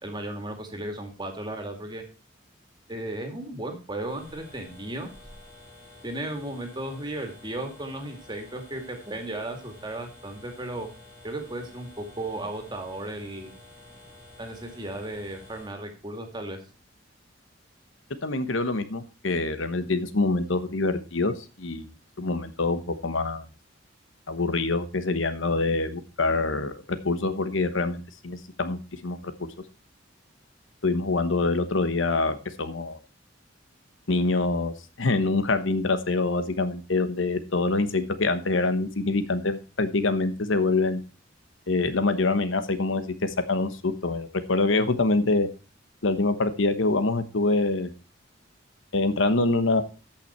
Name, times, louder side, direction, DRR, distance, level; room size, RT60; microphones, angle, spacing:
voice 1, 0.0-2.0 2.9-5.1 6.0-10.9 11.2-13.5 14.4-16.6, right 1 dB, 25° right, 4 dB, 2.3 m, -35 dB
sound 1, 4.0-15.7, left 2 dB, 15° left, 3.7 m, -50 dB
voice 2, 18.2-21.3 21.6-23.5 24.3-29.2 30.8-33.0 34.1-41.0 41.7-45.5 46.0-47.9 48.9-49.8, left 3 dB, 80° left, 11 dB, 1.1 m, -25 dB
14.0 x 5.8 x 4.4 m, 0.33 s
head